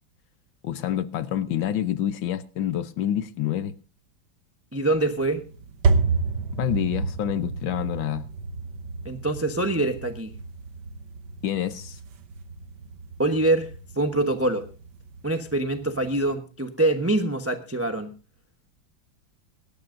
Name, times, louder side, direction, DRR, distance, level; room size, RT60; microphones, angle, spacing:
voice 1, 0.6-3.7 6.5-8.3 11.4-12.0, left 11 dB, 75° left, 1.5 m, -27 dB
voice 2, 4.7-5.4 9.0-10.3 13.2-13.7 14.0-14.6 15.2-18.1, right 2 dB, 15° right, 0.5 m, -24 dB
sound 1, 4.9-16.3, right 4 dB, 60° right, 1.6 m, -31 dB
23.5 x 12.5 x 2.6 m
omnidirectional pair, 2.2 m